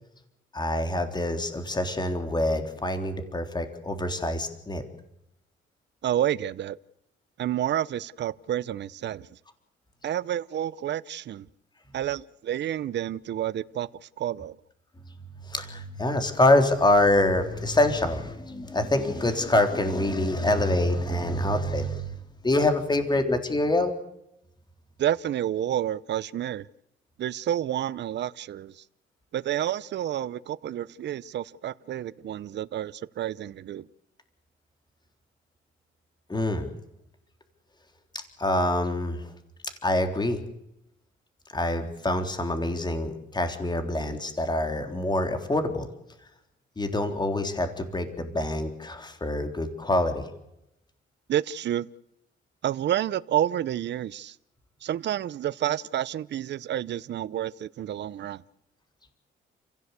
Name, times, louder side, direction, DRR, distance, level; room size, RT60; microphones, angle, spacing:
voice 1, 0.5-4.8 15.4-22.1 22.4-23.9 36.3-36.7 38.4-39.3 39.8-40.4 41.5-45.9 46.8-50.3, left 1 dB, 20° left, 3.6 m, -25 dB
voice 2, 6.0-6.8 7.4-9.3 10.0-11.5 11.9-13.9 14.2-14.5 25.0-26.7 27.2-28.7 29.3-33.9 51.3-51.9 52.6-54.3 54.8-58.4, right 11 dB, 60° right, 0.8 m, -29 dB
29.5 x 16.0 x 8.3 m
cardioid pair, 90°, 20 cm